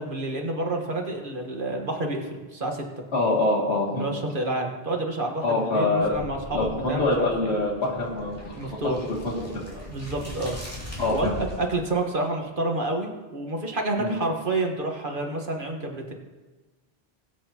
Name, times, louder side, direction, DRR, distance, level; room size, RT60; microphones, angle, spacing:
voice 1, 0.0-2.8 3.9-7.5 8.5-9.0 9.9-10.6 11.1-16.1, right 2 dB, 55° right, 2 dB, 1.6 m, -29 dB
voice 2, 3.1-4.0 5.4-6.1 6.5-9.4 11.0-11.3 14.0-14.2, left 2 dB, 85° left, -3 dB, 2.7 m, -25 dB
sound 1, 6.0-11.7, equal, 15° left, 2.6 m, -39 dB
20.5 x 8.2 x 2.9 m, 1.2 s
omnidirectional pair, 1.1 m